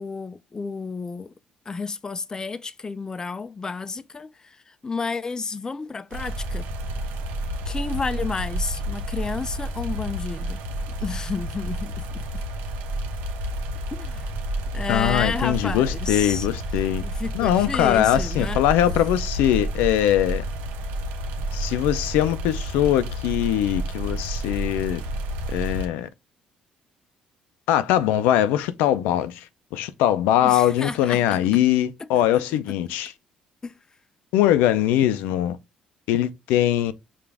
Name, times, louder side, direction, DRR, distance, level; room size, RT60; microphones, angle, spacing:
voice 1, 0.0-1.3 1.7-6.7 7.7-10.6 11.0-12.4 13.9-14.3 14.7-16.5 17.0-18.6 30.4-31.4 32.0-32.2 33.6-33.8, left 4 dB, 25° left, 0.4 m, -31 dB
sound 1, 6.1-25.9, right 1 dB, 85° right, 0.9 m, -30 dB
voice 2, 14.9-17.0 17.3-20.4 21.5-25.0 25.5-26.1 27.7-33.1 34.3-35.6 36.1-36.9, left 12 dB, 85° left, 0.5 m, -21 dB
4.9 x 2.5 x 3.4 m
cardioid pair, 85°, 3 cm